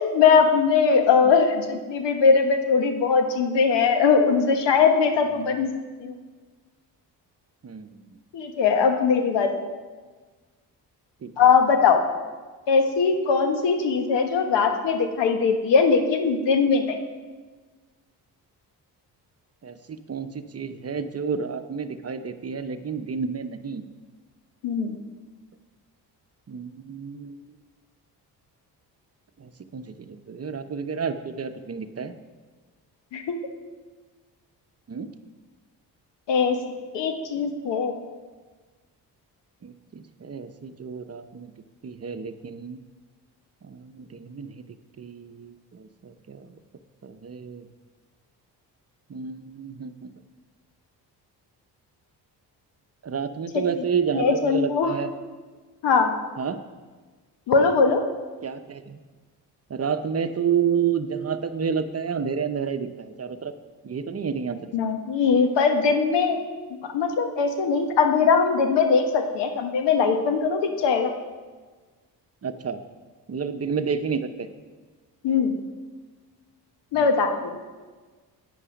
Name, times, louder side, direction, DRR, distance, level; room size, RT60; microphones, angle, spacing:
voice 1, 0.0-5.7 6.0-6.2 8.3-9.6 11.4-12.0 12.7-17.0 24.6-25.0 33.1-33.4 36.3-36.6 36.9-37.9 53.5-53.6 54.1-54.9 55.8-56.1 57.5-58.0 64.7-66.4 66.9-71.1 75.2-75.5 76.9-77.6, left 5 dB, 80° left, 6 dB, 1.3 m, -20 dB
voice 2, 7.6-8.0 11.2-11.5 19.6-23.9 26.5-27.5 29.4-32.1 34.9-35.1 39.6-41.5 41.8-42.8 43.6-44.6 45.0-46.6 47.0-47.7 49.1-50.1 53.0-55.1 56.4-56.6 58.4-59.0 59.7-63.5 63.8-64.6 72.4-72.8 73.3-74.5 76.9-77.1, right 6 dB, 35° right, 9 dB, 0.8 m, -30 dB
9.9 x 9.3 x 5.2 m, 1.4 s
supercardioid pair, 65°, 42 cm